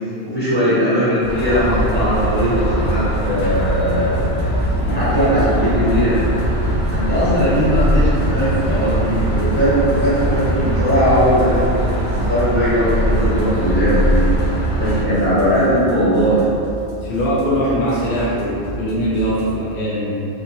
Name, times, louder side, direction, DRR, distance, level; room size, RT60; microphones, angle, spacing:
voice 1, 0.2-4.2 4.9-6.2 6.9-14.2 14.8-16.4, equal, 10° left, -14 dB, 1.0 m, -19 dB
sound 1, 1.2-15.0, equal, 85° left, 1.0 m, -20 dB
sound 2, 1.2-19.6, right 1 dB, 40° right, 0.6 m, -33 dB
voice 2, 17.0-20.1, equal, 60° left, -8 dB, 0.6 m, -21 dB
2.7 x 2.3 x 2.9 m, 2.7 s
omnidirectional pair, 1.2 m